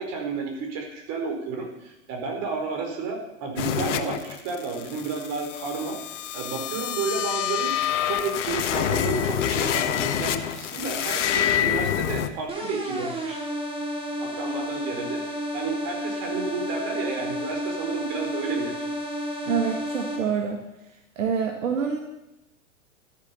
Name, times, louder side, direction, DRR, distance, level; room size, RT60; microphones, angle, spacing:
voice 1, 0.0-6.0 6.3-7.8 8.0-13.4 14.2-18.8, right 4 dB, 40° right, 3 dB, 4.7 m, -31 dB
sound 1, 3.6-12.3, left 10 dB, 65° left, 1.3 m, -27 dB
sound 2, 12.5-20.2, equal, 15° right, 3.4 m, -31 dB
voice 2, 19.5-20.6 21.2-22.0, right 6 dB, 75° right, 4 dB, 2.0 m, -26 dB
13.0 x 10.0 x 7.1 m, 0.93 s
hypercardioid pair, 100°, 39 cm